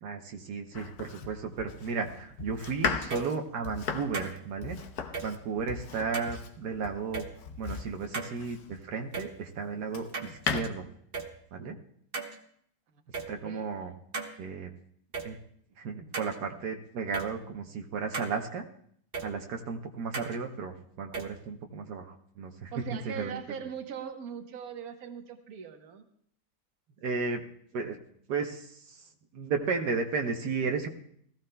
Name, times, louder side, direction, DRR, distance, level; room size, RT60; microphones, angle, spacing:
voice 1, 0.0-4.8 5.2-7.2 7.6-10.8 11.5-11.8 13.3-13.9 14.4-14.7 15.2-15.4 15.8-18.7 19.2-23.4 27.0-27.4 27.7-28.0 28.3-29.0 29.3-30.9, right 5 dB, 80° right, 3 dB, 1.5 m, -34 dB
Domestic sounds home sounds, 0.7-8.9 9.5-10.6, left 6 dB, 70° left, 1.4 m, -37 dB
sound 1, 3.0-3.3 4.1-4.3 5.1-5.3 6.1-6.3 7.1-7.3 8.1-8.3 9.1-9.3 10.1-10.7 11.1-11.3 12.1-12.3 13.1-13.3 14.1-14.3 15.1-15.3 16.1-16.3 17.1-17.3 18.1-18.3 19.1-19.3 20.1-20.3 21.1-21.3, right 4 dB, 35° right, 1.3 m, -35 dB
voice 2, 22.7-26.1, right 7 dB, 65° right, 6 dB, 1.5 m, -40 dB
19.0 x 15.0 x 2.2 m, 0.66 s
omnidirectional pair, 1.8 m